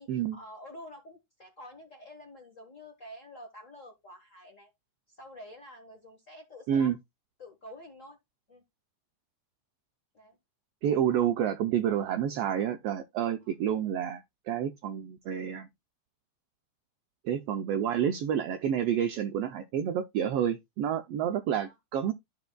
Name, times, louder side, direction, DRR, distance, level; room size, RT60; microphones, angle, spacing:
voice 1, 0.0-4.7 5.1-6.9 7.4-8.2 8.5-8.6 10.1-10.4 13.4-13.5 21.6-21.8, left 1 dB, 40° left, 1.1 m, -48 dB
voice 2, 10.8-15.7 17.2-22.1, right 9 dB, 85° right, 1.4 m, -29 dB
13.0 x 5.2 x 2.2 m
omnidirectional pair, 3.4 m